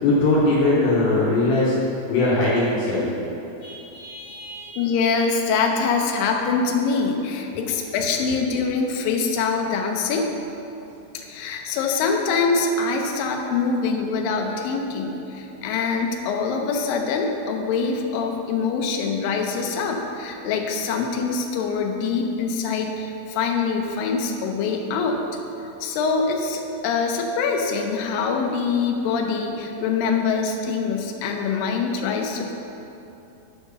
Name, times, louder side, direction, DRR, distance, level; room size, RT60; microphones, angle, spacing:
voice 1, 0.0-1.7 2.1-3.1 3.6-4.7, left 2 dB, 70° left, -8 dB, 2.5 m, -21 dB
voice 2, 4.8-10.3 11.1-25.2 25.8-32.5, left 5 dB, 90° left, 2 dB, 1.9 m, -24 dB
8.6 x 4.6 x 6.7 m, 2.9 s
omnidirectional pair, 4.9 m